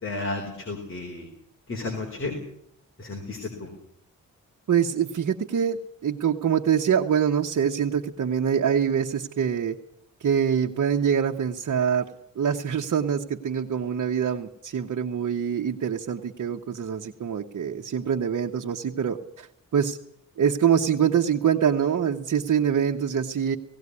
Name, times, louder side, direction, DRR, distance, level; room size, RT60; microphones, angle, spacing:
voice 1, 0.0-1.3 1.7-2.4 3.0-3.7, left 3 dB, 40° left, 1 dB, 4.1 m, -32 dB
voice 2, 4.7-9.8 10.2-12.1 12.3-19.5 19.7-20.0 20.4-23.6, right 8 dB, 65° right, 1 dB, 1.2 m, -24 dB
17.5 x 17.5 x 9.7 m, 0.69 s
wide cardioid pair, 175°, 30 cm